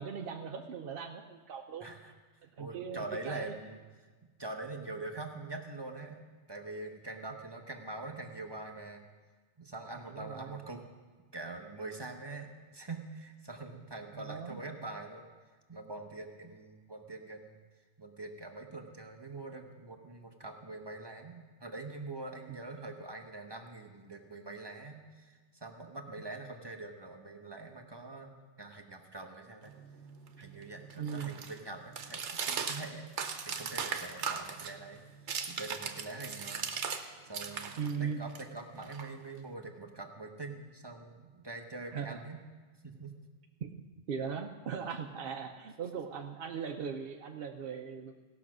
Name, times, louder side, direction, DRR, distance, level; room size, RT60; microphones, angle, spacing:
voice 1, 0.0-1.9 2.4-3.5 10.1-10.6 14.1-14.6 31.0-31.4 37.8-38.2 41.9-42.2 43.6-43.7 44.1-48.1, right 6 dB, 60° right, 3 dB, 0.8 m, -39 dB
voice 2, 1.8-2.1 2.6-3.8 4.4-9.0 9.6-10.9 11.3-15.3 15.7-17.6 18.0-29.7 30.4-33.1 33.5-36.7 37.2-42.4 42.8-43.2, right 2 dB, 25° right, 4 dB, 0.8 m, -44 dB
sound 1, 29.7-37.0 37.3-39.5, right 6 dB, 80° right, 1.1 m, -39 dB
17.0 x 6.0 x 6.1 m, 1.4 s
omnidirectional pair, 1.2 m